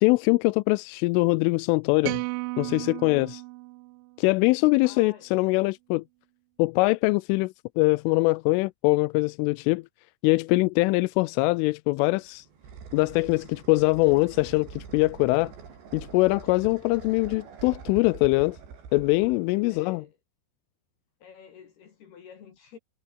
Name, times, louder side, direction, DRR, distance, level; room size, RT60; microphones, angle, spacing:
voice 1, 0.0-2.2 2.6-3.4 4.2-6.0 6.6-9.8 10.2-12.5 12.9-15.5 15.9-18.6 18.9-20.0, left 23 dB, 85° left, 3.1 m, -23 dB
sound 1, 2.0-4.4, right 24 dB, 85° right, 2.8 m, -34 dB
voice 2, 4.8-5.3 19.7-20.2 21.2-22.8, left 7 dB, 60° left, 4.4 m, -49 dB
sound 2, 12.0-20.0, right 6 dB, 65° right, 7.0 m, -45 dB
omnidirectional pair, 5.6 m